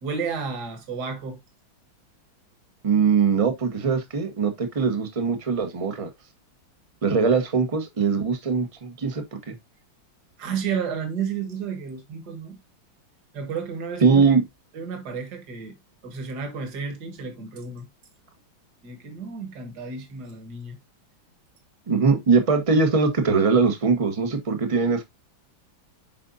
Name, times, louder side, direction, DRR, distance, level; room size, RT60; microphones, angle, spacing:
voice 1, 0.0-1.4 10.4-12.6 13.3-14.3 14.7-15.8 16.0-17.9 18.8-20.8, right 6 dB, 55° right, 2.0 m, -32 dB
voice 2, 2.8-6.1 7.0-9.6 14.0-14.4 21.9-25.0, right 5 dB, 30° right, 0.6 m, -21 dB
7.4 x 5.1 x 2.5 m
omnidirectional pair, 2.2 m